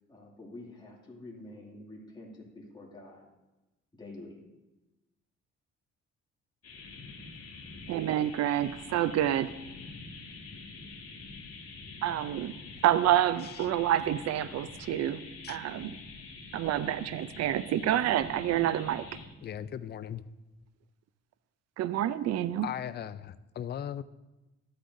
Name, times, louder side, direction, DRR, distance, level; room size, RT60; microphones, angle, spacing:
voice 1, 0.1-3.2 3.9-4.4, left 2 dB, 15° left, -4 dB, 2.4 m, -47 dB
sound 1, 6.6-19.3, left 3 dB, 50° left, 2.4 m, -46 dB
voice 2, 7.9-9.5 12.0-12.5 12.8-15.2 15.5-15.9 16.5-19.1 21.8-22.7, right 12 dB, 60° right, 15 dB, 0.5 m, -28 dB
voice 3, 19.4-20.2 22.6-24.0, left 9 dB, 35° left, 13 dB, 0.4 m, -38 dB
13.0 x 8.3 x 2.6 m, 1.0 s
cardioid pair, 90°, 30 cm